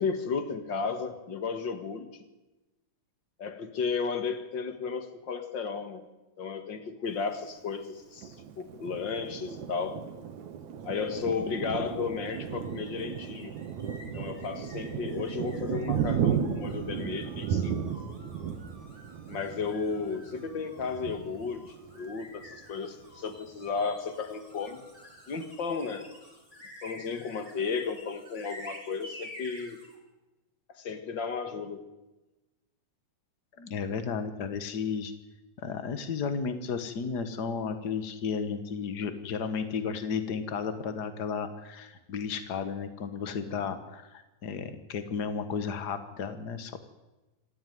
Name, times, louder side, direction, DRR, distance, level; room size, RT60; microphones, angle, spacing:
voice 1, 0.0-2.1 3.4-6.0 6.4-10.0 10.8-13.5 14.1-17.7 19.3-24.8 25.3-26.1 26.8-29.8 30.7-31.8, left 5 dB, 45° left, 9 dB, 1.8 m, -34 dB
Thunder, 8.2-22.5 23.0-23.1 23.4-24.1, right 8 dB, 65° right, 2.6 m, -35 dB
sound 1, 12.3-30.0, left 1 dB, 10° left, 4.7 m, -51 dB
voice 2, 33.6-35.1 35.6-46.8, left 6 dB, 65° left, 10 dB, 0.9 m, -33 dB
26.5 x 14.5 x 9.4 m, 1.1 s
omnidirectional pair, 4.0 m